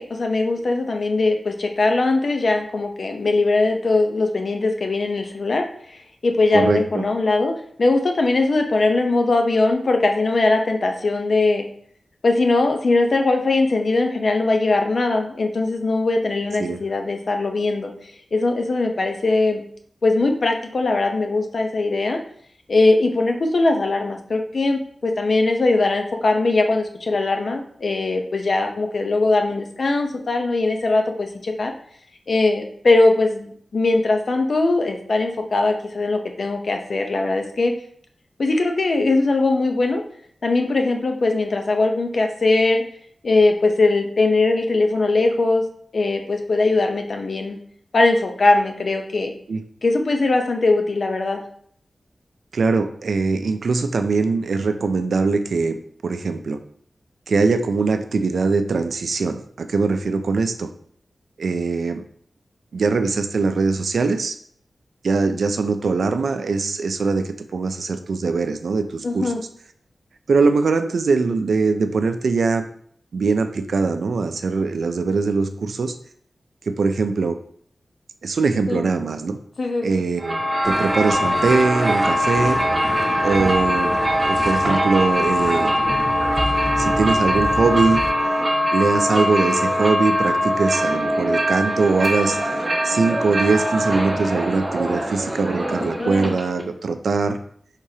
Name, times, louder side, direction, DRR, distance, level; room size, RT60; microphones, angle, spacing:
voice 1, 0.0-5.6 6.2-7.5 7.8-11.6 12.2-17.9 18.3-19.6 20.0-22.2 22.7-31.7 32.3-37.7 38.4-40.0 40.4-42.8 43.2-45.6 45.9-47.6 47.9-49.3 49.8-51.4 69.0-69.4 78.7-78.8 79.6-79.9 96.0-96.3, left 3 dB, 60° left, 4 dB, 0.6 m, -20 dB
voice 2, 6.5-7.1 16.6-16.8 49.5-49.6 52.5-55.8 56.0-56.6 57.3-60.7 61.4-62.0 62.7-64.4 65.0-69.3 70.3-72.7 73.1-75.9 76.7-77.4 78.2-79.4 79.8-82.6 83.2-84.0 84.3-85.7 86.8-88.0 88.7-92.5 92.8-97.4, right 4 dB, 90° right, 8 dB, 0.4 m, -21 dB
sound 1, 80.2-96.6, equal, 35° right, 1.0 m, -22 dB
sound 2, 80.6-88.1, equal, 10° right, 0.4 m, -30 dB
Coin (dropping), 84.5-85.4 91.5-91.7, right 2 dB, 55° right, 1.4 m, -32 dB
4.7 x 3.6 x 2.8 m, 0.62 s
wide cardioid pair, 90°, 0 cm